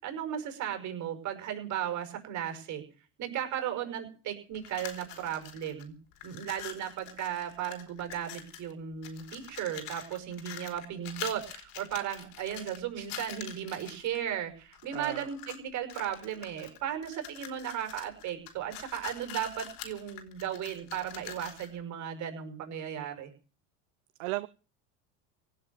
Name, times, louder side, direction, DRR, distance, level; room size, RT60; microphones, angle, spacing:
voice 1, 0.0-2.8 3.2-5.9 6.2-23.3, right 10 dB, 50° right, 6 dB, 5.8 m, -36 dB
sound 1, 4.6-5.8 6.1-8.7 9.0-14.2 14.7-15.6 15.9-21.8, left 9 dB, 70° left, 4.3 m, -45 dB
voice 2, 14.9-15.3 24.2-24.5, right 21 dB, 75° right, 15 dB, 0.8 m, -35 dB
17.5 x 7.7 x 9.6 m, 0.38 s
supercardioid pair, 100°, 36 cm